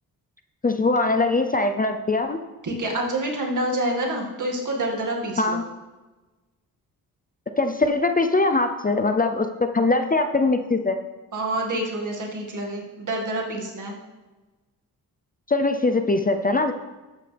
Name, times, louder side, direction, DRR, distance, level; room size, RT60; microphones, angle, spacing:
voice 1, 0.6-2.4 5.4-5.6 7.6-11.0 15.5-16.7, left 3 dB, 25° left, 6 dB, 0.6 m, -22 dB
voice 2, 2.6-5.6 11.3-13.9, right 1 dB, 55° right, -1 dB, 2.2 m, -27 dB
12.5 x 8.2 x 3.4 m, 1.2 s
cardioid pair, 90°, 36 cm